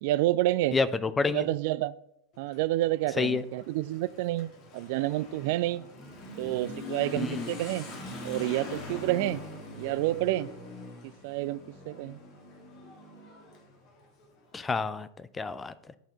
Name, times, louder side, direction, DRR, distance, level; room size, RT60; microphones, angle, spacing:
voice 1, 0.0-0.8 1.3-2.0 2.4-5.8 6.4-8.0 8.2-9.4 9.8-10.5 11.2-11.6 11.9-12.2, right 16 dB, 50° right, 18 dB, 0.3 m, -29 dB
voice 2, 0.7-1.5 3.2-3.4 7.2-7.5 14.5-15.1 15.4-15.7, left 4 dB, 15° left, 15 dB, 0.4 m, -28 dB
Motorcycle / Accelerating revving vroom, 2.3-14.7, left 2 dB, 40° left, 1.7 m, -43 dB
11.0 x 4.3 x 4.3 m, 0.81 s
figure-of-eight pair, 90°, 0 cm